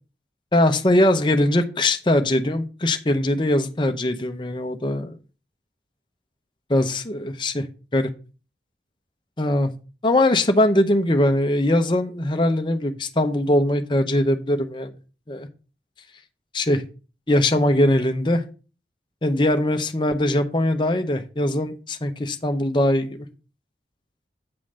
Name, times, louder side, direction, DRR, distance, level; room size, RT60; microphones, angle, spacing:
voice 1, 0.5-5.1 6.7-7.7 7.9-8.1 9.4-9.7 10.0-14.9 15.3-15.5 16.5-16.8 17.3-18.4 19.2-23.3, left 1 dB, 25° left, 6 dB, 0.8 m, -21 dB
8.7 x 3.9 x 6.3 m, 0.35 s
head